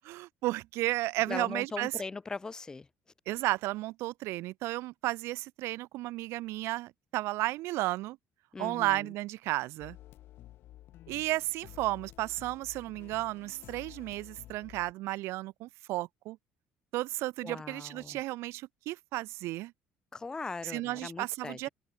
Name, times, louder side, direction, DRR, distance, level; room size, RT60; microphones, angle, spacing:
voice 1, 0.0-1.9 3.3-8.2 8.6-10.0 11.1-16.4 16.9-19.7 20.6-21.7, right 18 dB, 70° right, 1.8 m, -33 dB
voice 2, 1.3-2.9 8.5-9.1 17.4-18.2 20.1-21.7, left 4 dB, 15° left, 3.4 m, -40 dB
sound 1, 9.8-14.9, left 14 dB, 55° left, 5.9 m, -52 dB
open air
cardioid pair, 165°, 5 cm